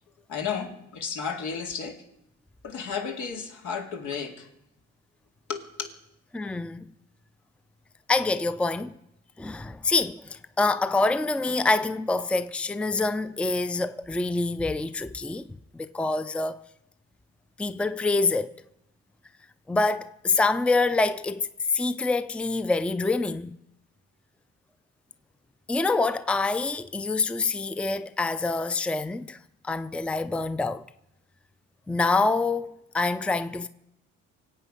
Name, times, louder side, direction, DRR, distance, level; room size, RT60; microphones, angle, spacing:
voice 1, 0.3-2.0 2.6-4.5 5.5-5.9, left 6 dB, 80° left, 2.4 m, -33 dB
voice 2, 6.3-6.9 8.1-8.9 9.4-15.4 15.7-16.6 17.6-18.6 19.7-23.6 25.7-29.4 29.6-30.8 31.9-33.7, left 3 dB, 5° left, 0.5 m, -26 dB
24.5 x 8.3 x 5.5 m
cardioid pair, 90°, 30 cm